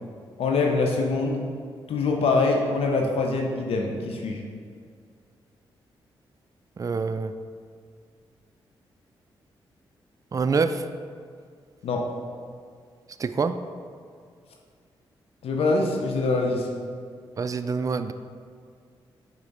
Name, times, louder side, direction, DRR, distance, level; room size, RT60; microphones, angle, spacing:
voice 1, 0.4-1.4 1.9-4.4 11.8-12.0 15.4-16.7, left 3 dB, 75° left, 1 dB, 0.6 m, -24 dB
voice 2, 6.8-7.3 10.3-10.8 13.2-13.6 17.4-18.1, right 4 dB, 35° right, 10 dB, 0.4 m, -26 dB
5.7 x 4.4 x 3.9 m, 2.1 s
supercardioid pair, 50°, 10 cm